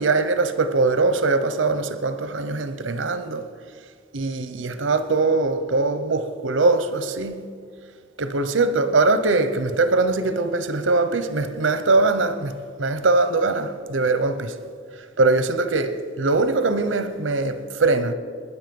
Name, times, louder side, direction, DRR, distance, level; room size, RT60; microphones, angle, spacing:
voice 1, 0.0-3.5 4.1-7.4 8.2-14.6 15.2-18.1, right 3 dB, 85° right, 0.8 m, -22 dB
20.0 x 9.9 x 5.4 m
head